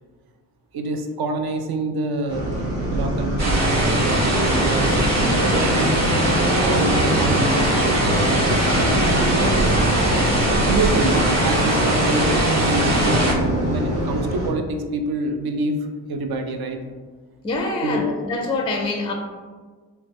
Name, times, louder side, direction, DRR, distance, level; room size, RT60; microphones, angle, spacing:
voice 1, 0.7-2.6 2.9-9.7 10.7-13.2 13.7-16.8 17.8-18.2, right 2 dB, 50° right, 5 dB, 0.5 m, -27 dB
sound 1, 2.3-14.5, equal, 70° right, 1.4 m, -23 dB
sound 2, 3.4-13.3, right 1 dB, 35° right, 0.9 m, -22 dB
voice 2, 17.4-19.1, left 2 dB, 10° left, 2 dB, 0.4 m, -25 dB
3.3 x 2.1 x 3.1 m, 1.4 s
supercardioid pair, 50°, 48 cm